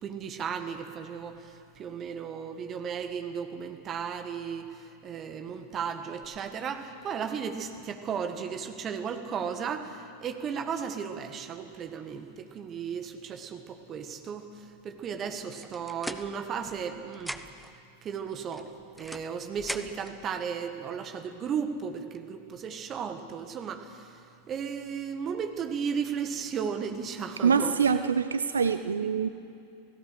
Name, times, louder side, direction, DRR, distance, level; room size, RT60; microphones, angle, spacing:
voice 1, 0.0-17.7 18.0-18.7 19.0-27.8, right 7 dB, 30° right, 7 dB, 1.8 m, -35 dB
sound 1, 15.5-16.9 17.1-17.7 18.5-20.2, equal, ahead, 0.9 m, -40 dB
voice 2, 27.4-29.3, right 6 dB, 70° right, 11 dB, 0.6 m, -25 dB
28.5 x 17.5 x 6.4 m, 2.6 s
figure-of-eight pair, 90°, 0 cm